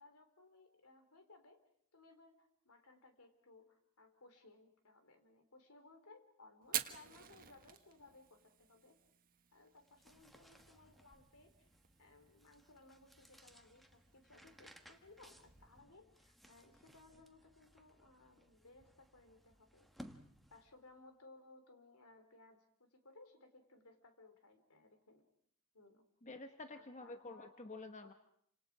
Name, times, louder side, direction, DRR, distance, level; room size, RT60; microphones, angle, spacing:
voice 1, 0.0-1.6 1.9-9.0 9.5-11.5 12.0-19.9 20.5-25.3 25.7-26.0 26.7-27.5 28.0-28.1, left 2 dB, 80° left, 7 dB, 3.4 m, -62 dB
Fire, 6.6-15.8, right 10 dB, 40° right, 1.3 m, -50 dB
sound 1, 9.7-20.9, equal, ahead, 1.3 m, -62 dB
voice 2, 26.2-28.1, left 2 dB, 35° left, 7 dB, 1.1 m, -50 dB
29.5 x 26.5 x 4.9 m, 0.68 s
head